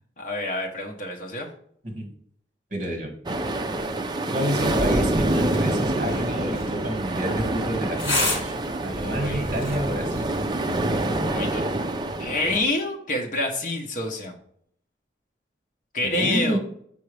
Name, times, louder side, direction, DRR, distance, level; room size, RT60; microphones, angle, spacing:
voice 1, 0.2-1.5 9.0-9.4 11.2-11.6 12.2-14.3 15.9-16.6, left 2 dB, 45° left, 0 dB, 1.0 m, -27 dB
voice 2, 2.7-3.1 4.3-8.5 8.8-10.3 16.0-16.6, equal, 45° right, 2 dB, 1.7 m, -29 dB
sound 1, 3.3-12.7, right 1 dB, 25° right, 0.4 m, -26 dB
sound 2, 5.4-10.4, left 2 dB, 70° left, 2.4 m, -32 dB
sound 3, 8.9-11.1 11.5-11.6, left 1 dB, 15° left, 0.6 m, -39 dB
6.1 x 5.4 x 3.3 m, 0.65 s
head